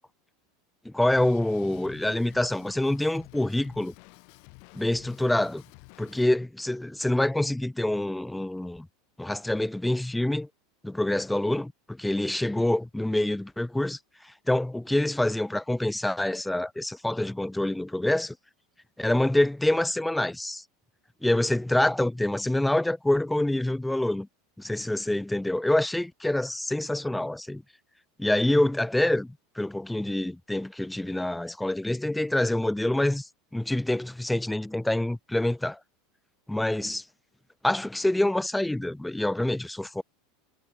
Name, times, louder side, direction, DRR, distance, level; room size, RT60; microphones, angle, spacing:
voice 1, 0.9-3.9 4.7-5.6 6.0-8.9 9.2-10.5 10.8-14.0 14.2-18.4 19.0-20.6 21.2-24.3 24.6-27.6 28.2-35.8 36.5-37.0 37.6-40.0, left 1 dB, 5° left, 0.4 m, -26 dB
Drum kit, 1.0-6.2, left 40 dB or more, 65° left, 3.9 m, -51 dB
hypercardioid pair, 100°, 0 cm